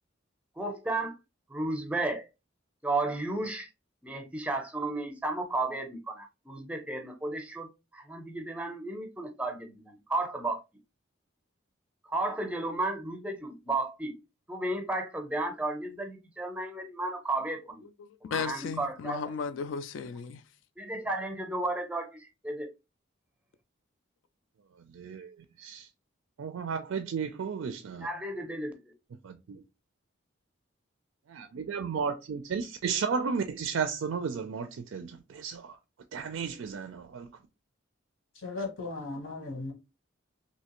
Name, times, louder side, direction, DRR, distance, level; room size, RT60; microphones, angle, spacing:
voice 1, 0.6-1.2 1.5-2.3 2.8-3.7 4.0-7.7 7.9-10.6 12.1-14.2 14.5-17.8 18.2-19.2 20.8-22.7 28.0-28.9, right 2 dB, 5° right, 0.6 m, -33 dB
voice 2, 18.0-20.4, left 6 dB, 65° left, 0.3 m, -35 dB
voice 3, 24.9-25.3 25.6-25.9 26.4-28.1 29.2-29.6 31.3-35.8 36.1-37.3, right 6 dB, 80° right, 0.4 m, -33 dB
voice 4, 38.4-39.7, left 3 dB, 90° left, 1.2 m, -36 dB
3.2 x 2.8 x 2.9 m
head